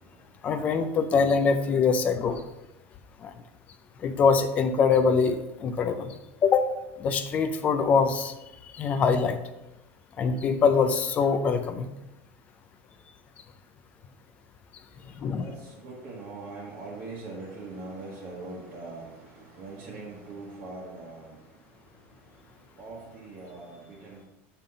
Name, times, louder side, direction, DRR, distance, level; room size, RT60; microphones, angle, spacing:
voice 1, 0.4-2.4 4.0-6.1 6.4-6.7 7.0-8.3 8.8-9.4 10.2-11.9 15.2-15.5, left 5 dB, 20° left, 9 dB, 0.4 m, -23 dB
voice 2, 15.3-21.4 22.8-24.2, right 3 dB, 30° right, -4 dB, 1.2 m, -41 dB
7.3 x 5.6 x 3.9 m, 0.95 s
supercardioid pair, 180°, 7 cm